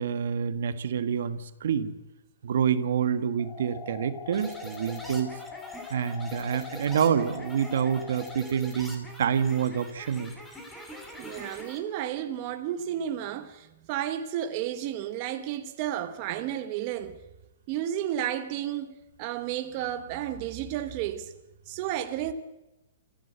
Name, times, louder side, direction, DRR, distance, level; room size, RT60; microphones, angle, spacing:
voice 1, 0.0-1.9 2.4-5.3 5.9-10.3, right 7 dB, 65° right, 1.5 m, -27 dB
sound 1, 3.4-8.4, left 7 dB, 20° left, 1.5 m, -43 dB
sound 2, 4.3-11.8, equal, 5° left, 2.9 m, -44 dB
voice 2, 11.2-17.2 17.7-21.3 21.7-22.3, right 11 dB, 35° right, 1.2 m, -32 dB
26.5 x 14.5 x 8.1 m
hypercardioid pair, 160°, 0 cm